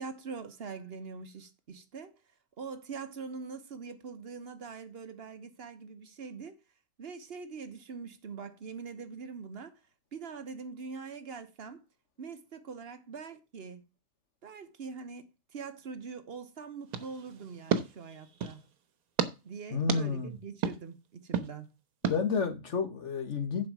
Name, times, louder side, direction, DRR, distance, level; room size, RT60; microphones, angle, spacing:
voice 1, 0.0-2.2 2.6-6.6 7.0-9.8 10.1-11.8 12.2-13.8 14.4-18.6 19.4-21.7, right 5 dB, 45° right, 1.2 m, -43 dB
sound 1, 16.9-18.6 19.2-19.3 19.9-20.0 20.6-20.8 21.3-21.5 22.0-22.2, right 7 dB, 80° right, 1.4 m, -32 dB
voice 2, 19.7-20.3 22.0-23.7, left 5 dB, 55° left, 1.9 m, -30 dB
7.3 x 5.3 x 6.1 m
omnidirectional pair, 1.5 m